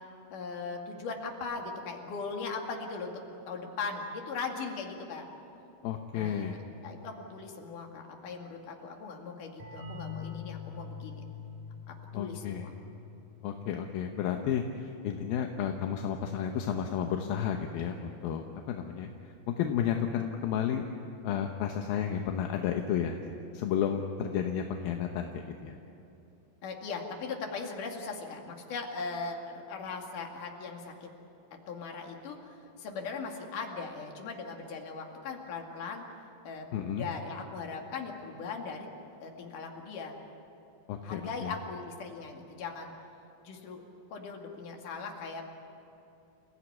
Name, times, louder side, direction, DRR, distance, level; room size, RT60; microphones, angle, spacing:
voice 1, 0.3-3.2 3.5-5.3 6.1-11.2 11.9-12.8 26.6-31.1 31.7-36.0 36.4-38.9 39.2-40.2 41.0-42.9 43.4-43.8 44.1-45.4, left 4 dB, 60° left, 1 dB, 3.8 m, -39 dB
voice 2, 5.8-6.6 12.1-12.7 13.4-20.8 21.2-23.2 23.5-25.8 36.7-37.1 40.9-41.5, left 8 dB, 80° left, 3 dB, 2.8 m, -32 dB
sound 1, 9.6-15.0, left 5 dB, 60° right, 6.8 m, -45 dB
29.5 x 16.5 x 9.6 m, 2.8 s
omnidirectional pair, 4.3 m